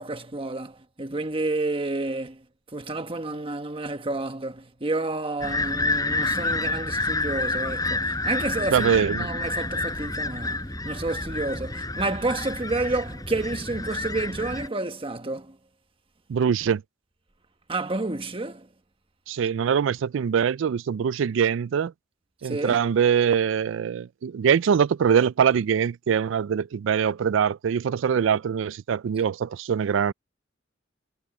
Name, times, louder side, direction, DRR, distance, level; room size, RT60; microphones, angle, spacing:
voice 1, 0.0-2.4 2.7-15.6 17.7-18.7 22.4-22.8, right 2 dB, 30° right, 1.4 m, -30 dB
sound 1, 5.4-14.7, left 2 dB, 20° left, 4.4 m, -29 dB
voice 2, 8.7-9.3 16.3-16.8 19.3-21.9 22.4-30.1, right 7 dB, 70° right, 0.3 m, -23 dB
head